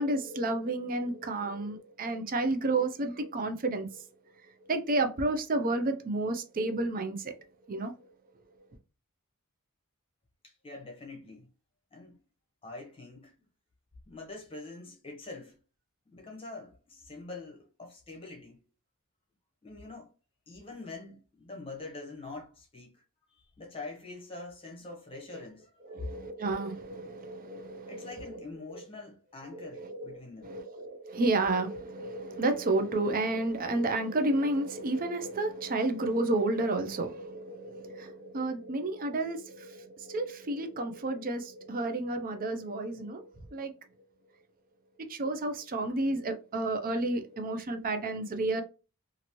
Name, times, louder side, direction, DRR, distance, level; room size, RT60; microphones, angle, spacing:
voice 1, 0.0-4.0 4.7-7.3 7.7-7.9 25.9-28.3 28.7-28.8 29.5-30.1 30.4-43.7 45.1-48.6, right 2 dB, 40° right, 0.5 m, -31 dB
voice 2, 10.4-11.5 11.9-12.2 12.6-13.4 14.1-15.6 16.1-18.6 19.6-20.1 20.5-23.0 23.3-26.0 27.9-30.5, left 3 dB, 25° left, 0.8 m, -45 dB
2.8 x 2.6 x 2.9 m
head